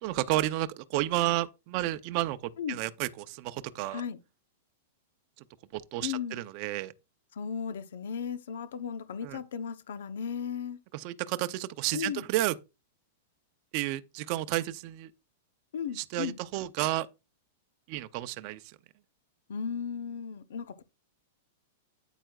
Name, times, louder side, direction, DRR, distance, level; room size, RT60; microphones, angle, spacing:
voice 1, 0.0-2.4 2.7-4.0 5.7-6.9 9.2-9.4 10.9-12.5 13.7-15.1 16.0-17.1 17.9-18.6, right 16 dB, 45° right, 0.6 m, -31 dB
voice 2, 6.0-6.4 7.3-10.8 11.9-12.3 15.7-16.4 19.5-20.8, left 7 dB, 80° left, 0.9 m, -36 dB
9.0 x 8.9 x 2.4 m
supercardioid pair, 150°, 0 cm